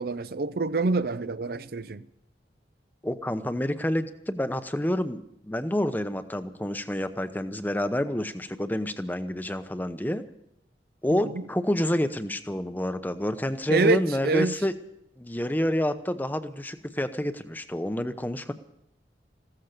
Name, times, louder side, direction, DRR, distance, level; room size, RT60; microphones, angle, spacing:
voice 1, 0.0-2.0 11.1-11.3 13.7-14.5, right 3 dB, 55° right, 0.5 m, -26 dB
voice 2, 3.0-10.2 11.0-14.7 15.2-18.5, left 1 dB, 10° left, 0.8 m, -28 dB
15.5 x 13.5 x 6.6 m
head